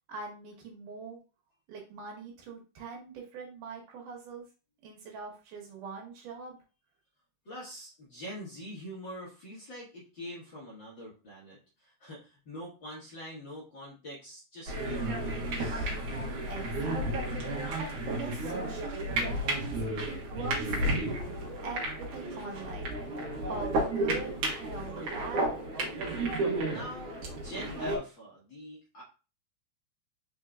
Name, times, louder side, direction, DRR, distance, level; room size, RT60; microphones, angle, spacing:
voice 1, 0.1-1.2 1.7-4.5 4.8-6.6 16.5-17.3 17.8-19.8 20.1-21.1 21.6-22.9 23.5-25.6, right 4 dB, 80° right, 0 dB, 2.8 m, -42 dB
voice 2, 7.4-15.9 26.6-29.0, equal, 50° left, -6 dB, 1.7 m, -44 dB
sound 1, 14.7-28.0, right 1 dB, 60° right, 2.0 m, -32 dB
5.1 x 4.5 x 2.3 m, 0.33 s
omnidirectional pair, 3.7 m